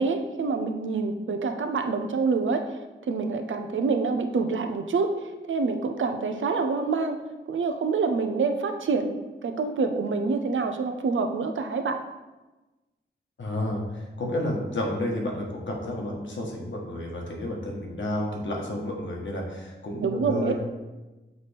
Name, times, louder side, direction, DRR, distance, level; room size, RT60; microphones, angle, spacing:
voice 1, 0.0-2.7 3.1-5.1 5.5-7.2 7.5-12.0 20.0-20.5, right 4 dB, 80° right, 6 dB, 0.6 m, -26 dB
voice 2, 13.4-20.5, left 1 dB, 75° left, -1 dB, 1.3 m, -31 dB
6.8 x 4.2 x 3.4 m, 1.1 s
wide cardioid pair, 95°, 20 cm